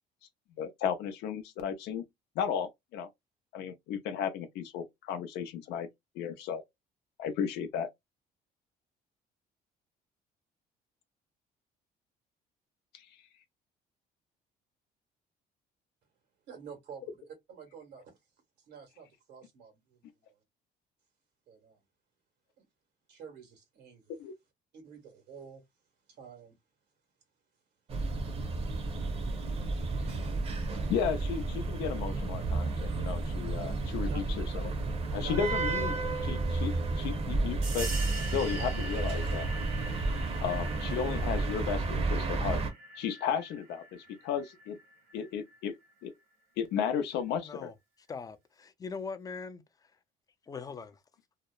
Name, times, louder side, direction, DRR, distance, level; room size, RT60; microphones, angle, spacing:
voice 1, 0.6-2.0 2.4-3.1 3.5-5.9 6.2-6.6 7.2-7.9 12.9-13.1 24.2-24.3 30.9-34.7 35.1-35.9 36.2-37.9 38.3-39.5 40.4-42.6 43.0-44.8 45.1-45.7 46.0-46.1 46.6-47.7, left 7 dB, 80° left, 0.4 m, -34 dB
voice 2, 16.5-18.1 18.6-20.2 21.5-21.8 22.6-22.7 23.1-24.2 24.7-25.6 26.1-26.5 34.0-34.2 35.1-35.5, right 6 dB, 85° right, 1.3 m, -49 dB
sound 1, 27.9-42.7, right 3 dB, 35° right, 0.7 m, -32 dB
sound 2, 37.6-45.9, right 2 dB, 65° right, 1.1 m, -44 dB
voice 3, 47.4-47.7 48.1-49.6 50.5-51.0, left 5 dB, 20° left, 0.4 m, -41 dB
2.7 x 2.0 x 2.2 m
cardioid pair, 110°, 17 cm